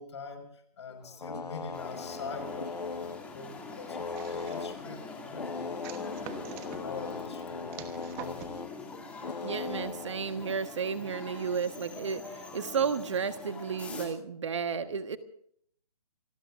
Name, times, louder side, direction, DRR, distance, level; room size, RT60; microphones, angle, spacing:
voice 1, 0.0-6.1 6.5-8.6, left 4 dB, 45° left, 6 dB, 5.7 m, -44 dB
sound 1, 0.9-3.3 3.9-4.9 5.3-10.5, left 4 dB, 90° left, 0.8 m, -39 dB
sound 2, 1.7-14.1, left 3 dB, 5° left, 2.6 m, -44 dB
sound 3, 4.1-4.9 5.8-6.8 7.7-8.6, right 10 dB, 15° right, 1.1 m, -45 dB
voice 2, 9.4-12.2 12.5-15.2, right 6 dB, 45° right, 9 dB, 1.5 m, -32 dB
27.5 x 19.5 x 2.6 m, 0.65 s
figure-of-eight pair, 150°, 20 cm